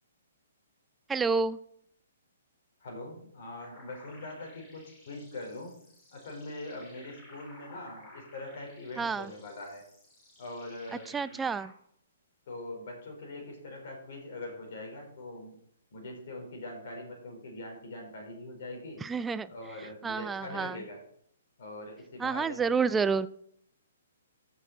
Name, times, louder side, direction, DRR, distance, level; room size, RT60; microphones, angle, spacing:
voice 1, 1.1-1.6 9.0-9.3 11.1-11.7 19.0-19.5 20.0-20.8 22.2-23.3, right 5 dB, 10° right, 16 dB, 0.4 m, -29 dB
voice 2, 2.8-5.7 6.1-9.8 10.4-11.4 12.5-15.6 15.9-19.0 19.5-21.0 21.6-22.8, left 2 dB, 55° left, 2 dB, 3.8 m, -42 dB
sound 1, 3.6-11.7, left 2 dB, 20° left, 3.1 m, -56 dB
14.5 x 6.4 x 3.9 m, 0.70 s
figure-of-eight pair, 125°, 0 cm